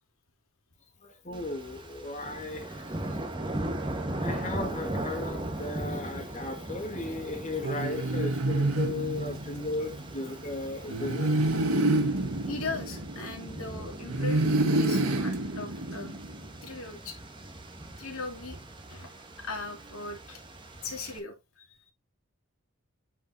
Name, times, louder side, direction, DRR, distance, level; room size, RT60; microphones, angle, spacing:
voice 1, 1.0-2.8 4.2-11.6, left 2 dB, 35° left, 1.7 m, -36 dB
sound 1, 1.3-21.2, right 1 dB, 20° right, 1.4 m, -39 dB
sound 2, 7.6-9.7 10.9-13.6 14.1-16.3, right 2 dB, 85° right, 1.5 m, -28 dB
voice 2, 12.5-16.2 16.6-17.2 18.0-18.6 18.9-19.1 19.4-20.4 20.8-21.7, left 3 dB, 80° left, 2.4 m, -39 dB
9.4 x 5.1 x 2.7 m
head